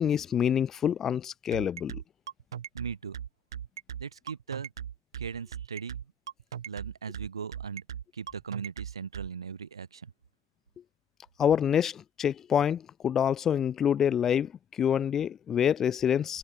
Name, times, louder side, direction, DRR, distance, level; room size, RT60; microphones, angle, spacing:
voice 1, 0.0-2.0 11.4-14.5 14.8-16.4, left 9 dB, 15° left, 0.3 m, -26 dB
sound 1, 1.5-9.3, right 9 dB, 60° right, 5.3 m, -38 dB
voice 2, 2.7-3.2 4.0-4.7 5.2-6.1 6.6-7.8 8.1-10.1, right 6 dB, 80° right, 7.8 m, -38 dB
hypercardioid pair, 140°, 3 cm